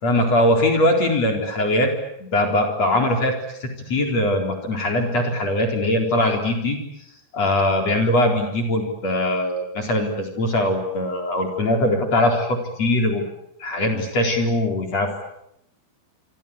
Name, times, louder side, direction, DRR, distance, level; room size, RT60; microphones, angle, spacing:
voice 1, 0.0-1.9 2.2-3.3 3.6-6.8 7.3-13.2 13.6-15.2, left 1 dB, 35° left, 3 dB, 4.9 m, -21 dB
28.5 x 24.5 x 8.6 m, 0.77 s
omnidirectional pair, 5.3 m